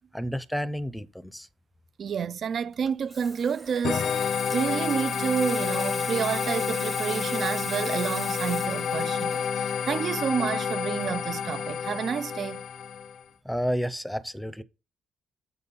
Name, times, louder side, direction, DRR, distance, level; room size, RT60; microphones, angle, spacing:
voice 1, 0.1-1.5 13.4-14.6, equal, 5° left, 0.6 m, -30 dB
voice 2, 2.0-12.6, right 7 dB, 55° right, 0.3 m, -29 dB
Water tap faucet / Sink (filling or washing), 2.7-12.0 12.3-12.6, right 2 dB, 15° right, 0.9 m, -40 dB
sound 1, 3.8-13.2, left 7 dB, 65° left, 0.5 m, -29 dB
7.5 x 4.1 x 5.4 m
cardioid pair, 90°, 0 cm